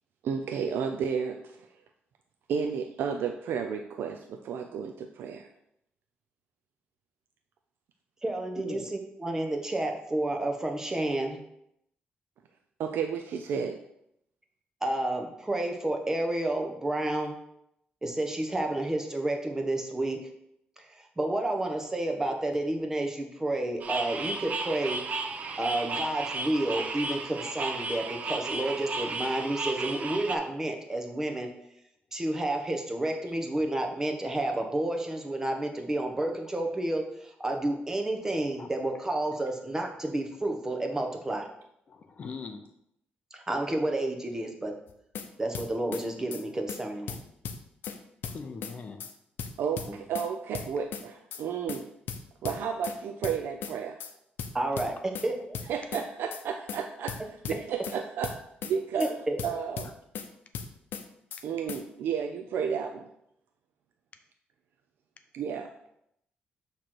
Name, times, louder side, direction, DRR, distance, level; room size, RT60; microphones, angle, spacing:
voice 1, 0.2-1.7 2.5-5.5 12.8-13.8 48.2-48.3 49.6-51.9 52.4-54.0 55.7-57.2 57.4-58.3 58.6-59.1 59.4-59.9 61.4-63.1 65.3-65.7, right 7 dB, 85° right, 5 dB, 0.5 m, -32 dB
voice 2, 8.2-11.4 14.8-17.4 18.0-20.2 20.8-20.9 21.2-25.0 25.6-31.5 32.1-41.5 43.3-44.7 45.4-47.2 49.9-50.0 54.5-55.6 59.0-59.4, right 1 dB, 15° right, 3 dB, 0.9 m, -30 dB
sound 1, 23.8-30.3, right 3 dB, 45° right, 0.6 m, -34 dB
voice 3, 41.9-42.7 48.3-49.1, left 4 dB, 40° left, 6 dB, 0.6 m, -40 dB
sound 2, 44.9-45.3 45.5-46.0 46.3-46.4 46.7-46.8 47.1-48.0 48.2-48.7 49.0-49.1 49.4-50.3 50.5-51.0 51.3-51.4 51.7-51.8 52.1-53.0 53.2-53.7 54.0-54.1 54.4-55.3 55.5-56.0 56.3-56.4 56.7-56.8 57.1-58.0 58.2-58.7 59.0-59.1 59.4-60.3 60.5-61.0 61.3-61.4 61.7-61.8, left 7 dB, 80° left, 0.6 m, -37 dB
6.6 x 3.1 x 5.9 m, 0.77 s
cardioid pair, 140°, 4 cm